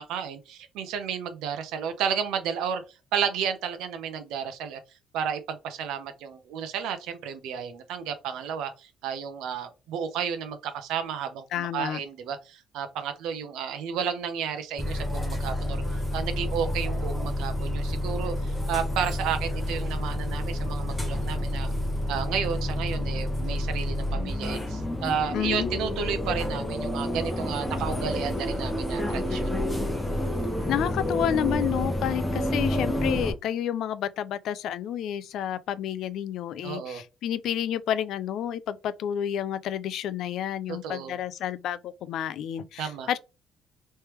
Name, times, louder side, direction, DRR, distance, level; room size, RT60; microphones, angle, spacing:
voice 1, 0.0-2.8 3.1-4.8 5.1-15.8 16.1-21.7 22.1-29.6 36.6-37.0 40.7-41.1 42.8-43.1, right 7 dB, 85° right, 0.7 m, -32 dB
voice 2, 11.5-12.0 25.3-25.7 30.7-43.2, left 10 dB, 60° left, 0.3 m, -30 dB
sound 1, 14.8-33.3, left 1 dB, 5° left, 0.8 m, -29 dB
3.2 x 3.2 x 3.0 m
cardioid pair, 175°, 0 cm